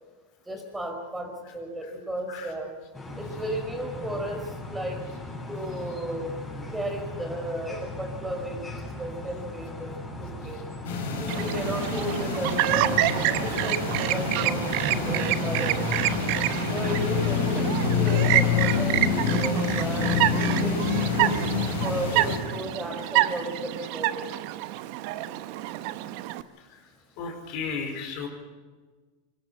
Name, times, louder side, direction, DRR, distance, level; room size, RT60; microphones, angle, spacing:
voice 1, 0.5-2.7 3.2-5.0 5.5-6.3 6.7-10.6 11.2-15.8 16.7-21.4 21.8-24.3, equal, 10° right, 4 dB, 4.3 m, -34 dB
sound 1, 2.9-22.3, left 1 dB, 10° left, 7.0 m, -38 dB
sound 2, 10.8-22.4, left 5 dB, 75° left, 4.9 m, -27 dB
Chirp tweet, 11.3-26.4, right 16 dB, 60° right, 0.8 m, -28 dB
voice 2, 27.2-28.3, left 5 dB, 60° left, 4 dB, 4.3 m, -34 dB
24.0 x 12.5 x 8.8 m, 1.3 s
hypercardioid pair, 105°, 0 cm